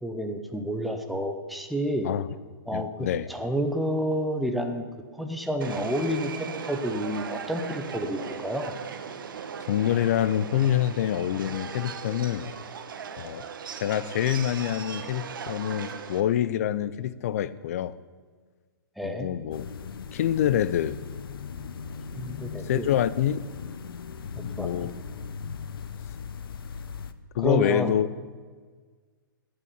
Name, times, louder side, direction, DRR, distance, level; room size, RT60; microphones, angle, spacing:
voice 1, 0.0-2.1 2.7-4.9 5.1-8.7 19.0-19.3 22.1-22.9 24.3-24.9 27.4-27.9, equal, ahead, 4 dB, 0.7 m, -30 dB
voice 2, 2.7-3.3 9.7-12.5 13.2-13.4 13.8-17.9 19.0-19.6 20.1-21.0 22.7-23.4 24.4-24.9 27.3-28.1, left 11 dB, 40° left, 17 dB, 0.6 m, -26 dB
Subway metro underground, 5.6-16.2, right 6 dB, 60° right, 1.3 m, -38 dB
sound 1, 19.5-27.1, left 6 dB, 70° left, 0.9 m, -38 dB
11.0 x 8.8 x 9.9 m, 1.5 s
hypercardioid pair, 165°, 12 cm